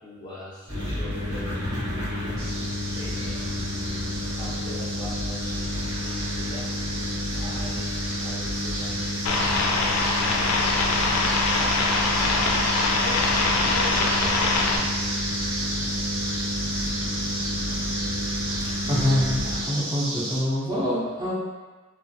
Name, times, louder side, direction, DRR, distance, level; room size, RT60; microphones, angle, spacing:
voice 1, 0.0-1.6 2.9-3.6 4.3-6.7 7.3-9.6 12.3-14.9, left 2 dB, 20° left, -8 dB, 0.5 m, -41 dB
sound 1, 0.7-19.6, left 1 dB, 85° right, 1.4 m, -30 dB
sound 2, 2.4-20.4, right 1 dB, 70° right, 0.5 m, -32 dB
sound 3, 9.2-14.8, left 3 dB, 85° left, 0.3 m, -23 dB
voice 2, 18.8-21.3, left 1 dB, 20° right, -8 dB, 0.6 m, -25 dB
3.1 x 2.0 x 2.6 m, 1.3 s
head